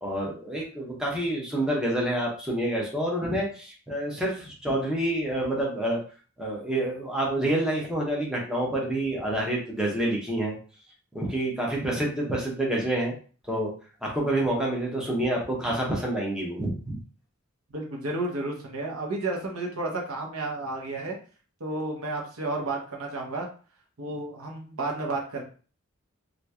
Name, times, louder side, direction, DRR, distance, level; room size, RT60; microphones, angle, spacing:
voice 1, 0.0-6.0 6.4-10.6 11.1-13.1 13.5-13.7 14.0-17.0, right 1 dB, 5° right, -3 dB, 0.8 m, -28 dB
voice 2, 17.7-21.2 21.6-23.5 24.0-25.4, right 2 dB, 85° right, 0 dB, 0.9 m, -32 dB
2.9 x 2.6 x 3.4 m, 0.39 s
head